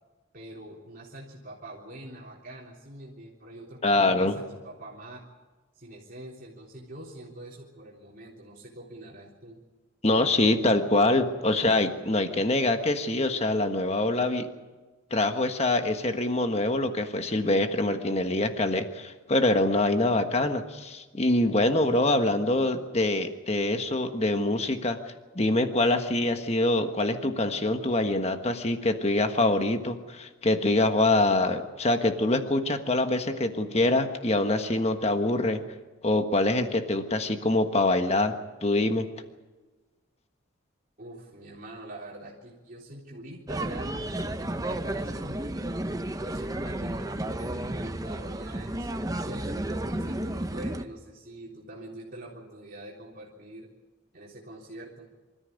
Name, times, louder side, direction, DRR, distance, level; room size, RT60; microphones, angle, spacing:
voice 1, 0.3-5.2 5.7-9.6 41.0-45.6 46.0-53.7 54.1-55.1, right 1 dB, 45° right, -4 dB, 3.6 m, -44 dB
voice 2, 3.8-4.4 10.0-14.5 15.1-35.6 36.0-38.3 38.6-39.1, left 2 dB, 30° left, 7 dB, 1.4 m, -25 dB
sound 1, 43.5-50.8, right 1 dB, 15° right, 0.8 m, -32 dB
26.0 x 14.0 x 9.5 m, 1.3 s
head